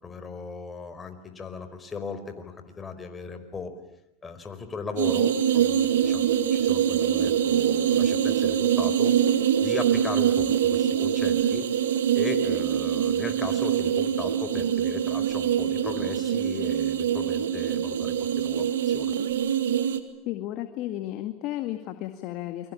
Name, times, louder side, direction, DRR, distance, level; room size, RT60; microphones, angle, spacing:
voice 1, 0.0-3.7 4.2-9.2 9.6-11.7 12.1-19.1, left 4 dB, 20° left, 8 dB, 4.6 m, -37 dB
sound 1, 5.0-20.0, right 9 dB, 90° right, 2.1 m, -24 dB
voice 2, 20.2-22.7, left 14 dB, 55° left, 8 dB, 2.1 m, -33 dB
29.5 x 23.0 x 8.7 m, 0.79 s
hypercardioid pair, 105°, 0 cm